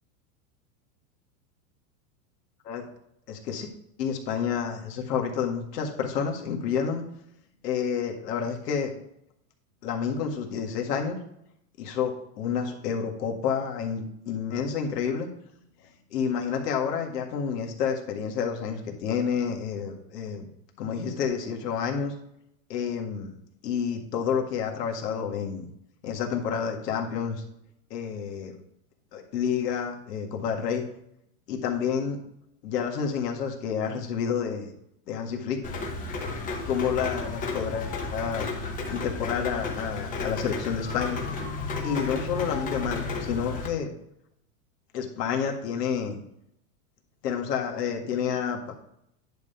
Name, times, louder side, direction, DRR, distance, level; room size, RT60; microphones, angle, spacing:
voice 1, 3.3-3.7 4.0-7.0 7.6-8.9 9.8-11.2 11.8-15.3 16.1-20.5 20.8-22.1 22.7-23.3 23.6-25.7 26.0-27.4 27.9-28.6 29.1-30.8 31.5-32.2 32.6-34.7 35.1-35.6 36.7-38.5 38.9-41.2 41.8-43.9 44.9-46.2 47.2-48.8, left 7 dB, 75° left, 2 dB, 1.9 m, -29 dB
Rain, 35.6-43.7, left 3 dB, 15° left, 0.9 m, -33 dB
10.5 x 3.5 x 5.6 m, 0.76 s
supercardioid pair, 160°, 48 cm